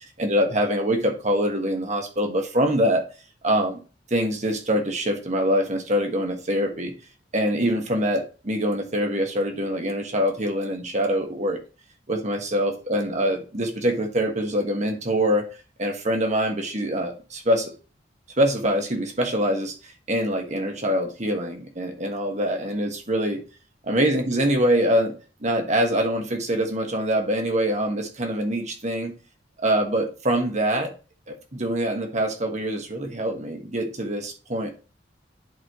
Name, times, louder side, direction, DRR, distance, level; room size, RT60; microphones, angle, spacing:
voice 1, 0.2-3.0 3.4-3.8 4.1-6.9 7.3-11.6 12.1-15.5 15.8-17.7 18.4-19.7 20.1-23.4 23.9-25.1 25.4-29.2 29.6-30.9 31.3-34.7, equal, 40° right, 4 dB, 1.5 m, -24 dB
11.0 x 4.2 x 3.1 m, 0.33 s
head